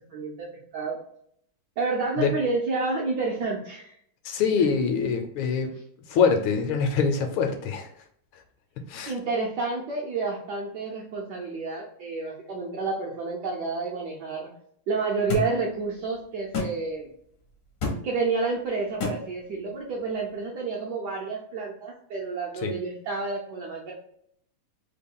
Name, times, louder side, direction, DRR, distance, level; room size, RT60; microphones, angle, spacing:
voice 1, 0.1-1.0 1.8-3.9 9.1-14.5 14.9-17.1 18.0-23.9, right 4 dB, 75° right, -3 dB, 1.0 m, -30 dB
voice 2, 4.2-5.7 6.1-7.9 8.9-9.1 22.6-22.7, left 5 dB, 80° left, 5 dB, 1.4 m, -24 dB
sound 1, 15.3-15.5 16.5-16.7 17.8-18.0 19.0-19.2, left 3 dB, 60° left, 0.8 m, -26 dB
3.5 x 2.2 x 3.5 m, 0.68 s
omnidirectional pair, 2.4 m